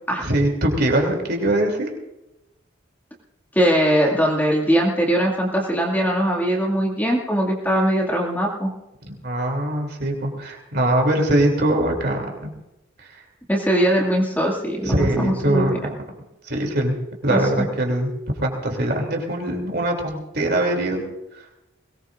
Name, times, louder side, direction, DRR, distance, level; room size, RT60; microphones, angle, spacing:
voice 1, 0.2-1.9 9.0-12.5 13.0-13.2 14.8-15.9 16.4-17.0 17.2-18.1 18.4-21.0, right 1 dB, 55° right, 2 dB, 3.0 m, -22 dB
voice 2, 3.5-8.7 13.5-15.8 17.3-17.7, equal, 10° left, -1 dB, 2.2 m, -21 dB
22.0 x 19.0 x 2.5 m, 0.93 s
head